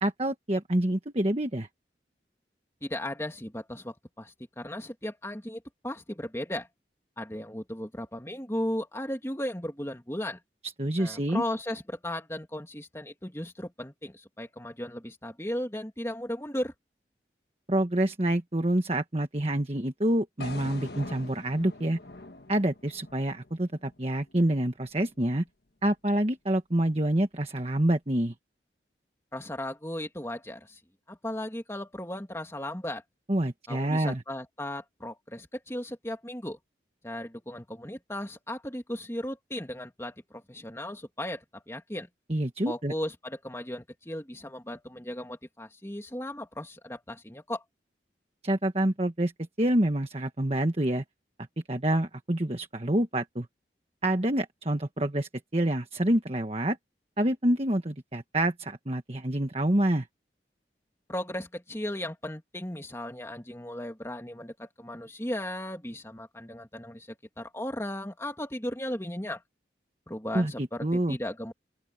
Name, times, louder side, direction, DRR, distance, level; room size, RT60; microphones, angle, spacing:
voice 1, 0.0-1.7 10.6-11.4 17.7-22.0 22.5-25.4 25.8-28.3 33.3-34.2 42.3-42.9 48.4-49.3 49.6-51.0 51.7-53.5 54.0-56.8 57.2-60.1 70.3-71.2, right 1 dB, 35° right, 1.4 m, -27 dB
voice 2, 2.8-6.7 7.2-10.4 11.0-16.7 29.3-30.8 31.1-33.0 33.7-36.6 37.0-42.1 42.7-47.6 61.1-69.4 70.1-71.5, left 1 dB, 15° left, 2.4 m, -36 dB
sound 1, 20.4-24.5, left 2 dB, 65° left, 1.5 m, -44 dB
open air
head